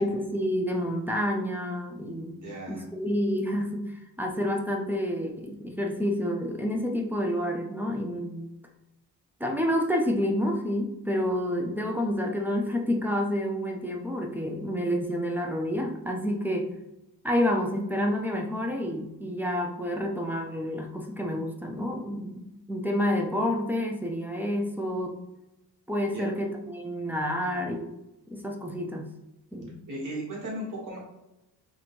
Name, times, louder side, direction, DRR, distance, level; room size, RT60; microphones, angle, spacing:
voice 1, 0.0-2.4 2.7-8.5 9.4-16.7 17.2-25.2 25.9-27.9 28.3-29.1 29.5-29.8, equal, 5° right, 1 dB, 0.3 m, -29 dB
voice 2, 2.3-2.8 26.1-26.2 29.9-31.0, right 1 dB, 50° right, -4 dB, 1.5 m, -36 dB
2.9 x 2.6 x 4.2 m, 0.93 s
wide cardioid pair, 155°, 39 cm